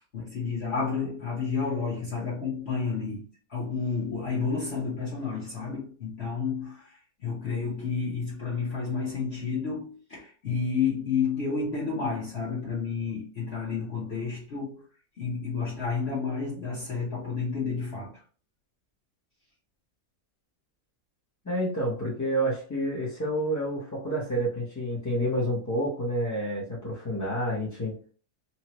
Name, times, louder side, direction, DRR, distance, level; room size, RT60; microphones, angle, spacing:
voice 1, 0.1-3.2 3.5-14.8 15.2-18.2, left 5 dB, 50° left, 1.2 m, -31 dB
voice 2, 21.4-27.9, equal, 20° left, 0.5 m, -29 dB
2.9 x 2.8 x 2.9 m
omnidirectional pair, 1.5 m